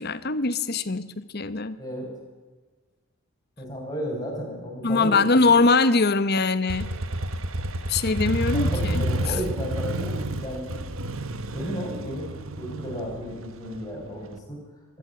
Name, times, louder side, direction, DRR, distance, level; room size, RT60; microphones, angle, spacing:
voice 1, 0.0-1.8 4.8-6.9 7.9-9.0, left 3 dB, 50° left, 14 dB, 1.1 m, -22 dB
voice 2, 1.8-2.1 3.6-5.2 8.1-8.2 8.5-10.6 11.5-14.6, equal, 15° left, -2 dB, 6.9 m, -33 dB
Motorcycle, 6.7-14.3, right 1 dB, 70° right, 1.3 m, -30 dB
24.0 x 12.5 x 9.9 m, 1.4 s
head